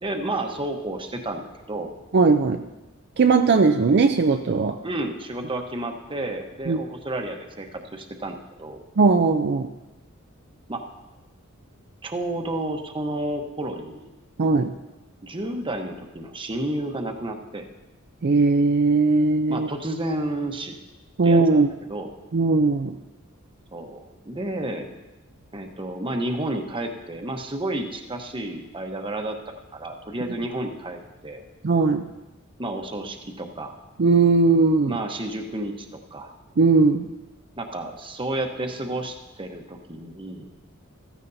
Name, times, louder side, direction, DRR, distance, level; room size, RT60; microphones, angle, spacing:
voice 1, 0.0-1.9 4.8-8.8 10.7-10.8 12.0-14.1 15.2-17.7 19.5-20.8 21.2-22.1 23.7-24.9 25.5-29.4 29.7-31.4 32.6-33.8 34.9-36.3 37.6-40.5, right 1 dB, 25° right, 4 dB, 1.0 m, -31 dB
voice 2, 2.1-2.6 3.2-4.8 6.7-6.8 9.0-9.7 14.4-14.7 18.2-19.7 21.2-21.7 22.3-22.9 31.6-32.1 34.0-35.0 36.6-37.0, right 4 dB, 50° right, 6 dB, 0.5 m, -18 dB
15.0 x 14.0 x 2.7 m, 1.1 s
head